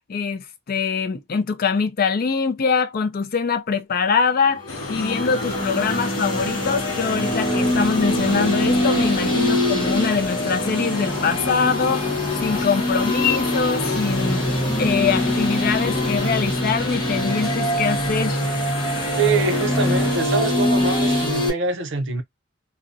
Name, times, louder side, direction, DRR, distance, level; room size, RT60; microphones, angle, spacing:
voice 1, 0.1-12.1 12.4-14.4 14.8-18.5, left 5 dB, 45° left, 0.4 m, -23 dB
sound 1, 4.6-21.5, left 1 dB, 25° left, 0.8 m, -23 dB
sound 2, 4.7-20.2, left 3 dB, 75° left, 0.7 m, -33 dB
voice 2, 19.1-22.2, right 4 dB, 60° right, 0.5 m, -24 dB
2.5 x 2.0 x 2.5 m
head